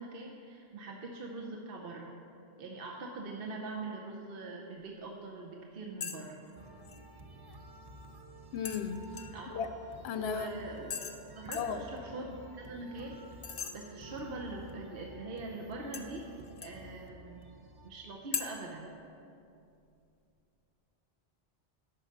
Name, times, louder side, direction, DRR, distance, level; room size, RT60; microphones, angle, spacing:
voice 1, 0.0-2.1 2.6-6.4 9.3-9.5 10.2-10.9 11.3-13.2 13.7-16.3 16.6-17.4 17.8-18.9, right 3 dB, 60° right, 0 dB, 1.0 m, -42 dB
sound 1, 6.0-6.2 6.5-7.0 8.7-9.5 10.9-11.2 11.5-11.8 13.4-13.7 15.9-16.8 18.3-18.5, left 6 dB, 45° left, 0.5 m, -39 dB
sound 2, 6.6-17.9, right 1 dB, 30° right, 0.5 m, -51 dB
voice 2, 8.5-9.1 9.5-9.7 10.0-10.5 11.5-11.8, left 7 dB, 75° left, 9 dB, 0.8 m, -35 dB
11.5 x 4.9 x 6.5 m, 2.6 s
omnidirectional pair, 1.1 m